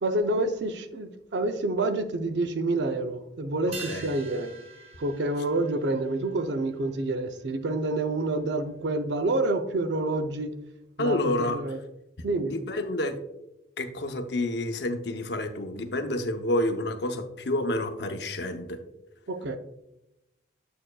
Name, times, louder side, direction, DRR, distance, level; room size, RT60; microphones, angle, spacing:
voice 1, 0.0-4.5 5.0-10.5 11.0-11.8 12.2-12.5 19.3-19.6, right 2 dB, 70° right, 0.5 m, -28 dB
sound 1, 3.7-8.4 8.7-8.8, right 4 dB, 30° right, 0.7 m, -46 dB
voice 2, 3.8-4.1 11.0-11.6 12.4-13.2 13.8-18.8, left 1 dB, 65° left, 0.6 m, -29 dB
7.5 x 6.6 x 2.2 m
head